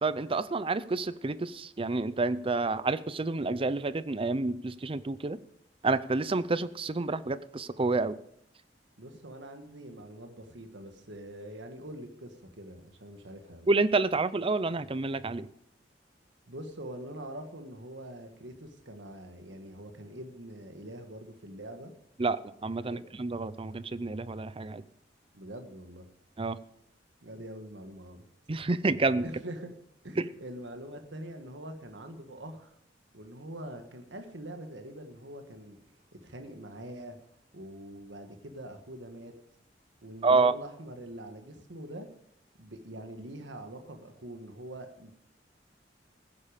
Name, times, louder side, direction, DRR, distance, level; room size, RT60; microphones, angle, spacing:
voice 1, 0.0-5.4 5.8-8.2 13.7-15.5 22.2-24.8 26.4-26.6 28.5-29.3 30.2-30.3 40.2-40.5, right 3 dB, 30° right, 0.6 m, -29 dB
voice 2, 9.0-13.7 16.5-21.9 22.8-23.0 25.3-26.1 27.2-28.2 29.2-29.7 30.0-32.7 33.1-35.8 36.2-37.2 37.5-39.3 40.0-42.1 42.6-45.1, right 1 dB, 80° right, 1.6 m, -44 dB
16.0 x 9.9 x 5.1 m
head